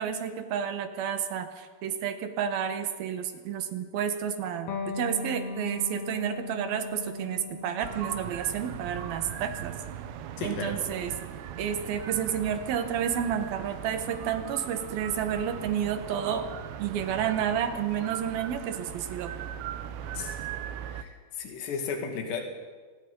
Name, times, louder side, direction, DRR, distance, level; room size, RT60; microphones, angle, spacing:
voice 1, 0.0-9.7 10.4-11.1 11.6-16.5 16.8-19.3, right 8 dB, 65° right, 8 dB, 3.0 m, -30 dB
Electric guitar, 4.7-11.8, left 3 dB, 50° left, 3.2 m, -39 dB
sound 1, 7.8-21.0, right 10 dB, 85° right, 3.2 m, -39 dB
voice 2, 10.4-10.8 20.1-20.4 20.9-22.4, left 5 dB, 80° left, 3 dB, 4.3 m, -34 dB
25.5 x 20.0 x 5.4 m, 1.5 s
omnidirectional pair, 4.9 m